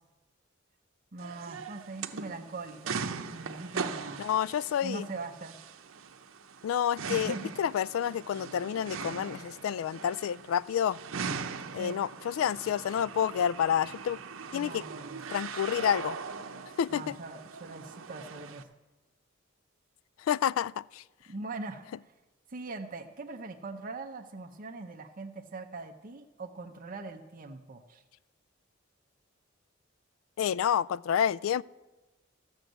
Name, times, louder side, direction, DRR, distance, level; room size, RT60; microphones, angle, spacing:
voice 1, 1.1-3.0 3.3-4.3 4.8-5.6 7.1-7.6 11.8-12.0 14.5-15.2 16.9-18.7 21.3-21.9 22.5-28.0, right 3 dB, 40° right, 4 dB, 0.7 m, -41 dB
sound 1, 1.2-18.6, right 5 dB, 85° right, 0.7 m, -40 dB
voice 2, 4.2-5.1 6.6-11.0 11.7-14.2 14.5-14.8 15.3-16.2 16.8-17.2 20.2-21.0 30.4-31.6, left 9 dB, 85° left, 18 dB, 0.3 m, -29 dB
14.0 x 6.3 x 7.9 m, 1.1 s
head